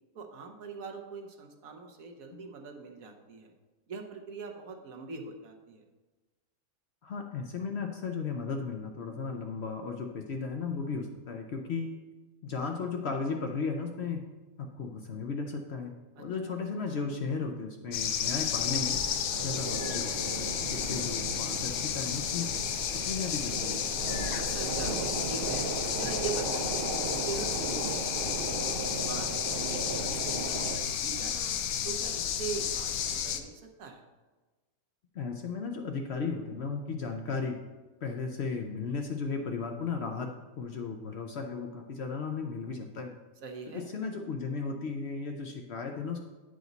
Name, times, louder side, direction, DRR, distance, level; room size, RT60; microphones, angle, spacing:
voice 1, 0.1-3.5 3.9-5.8 16.2-16.3 24.4-26.9 27.2-31.4 31.8-34.0 43.4-43.9, right 4 dB, 70° right, 3 dB, 1.3 m, -42 dB
voice 2, 7.0-12.0 12.4-14.2 14.6-19.0 19.4-22.5 22.9-24.2 35.1-37.6 38.0-40.3 40.6-43.1 43.7-46.3, left 4 dB, 60° left, 3 dB, 0.8 m, -35 dB
sound 1, 17.9-33.4, left 8 dB, 80° left, 1.0 m, -32 dB
sound 2, 18.6-30.8, right 3 dB, 50° right, 0.8 m, -37 dB
9.1 x 5.0 x 4.0 m, 1.2 s
omnidirectional pair, 1.5 m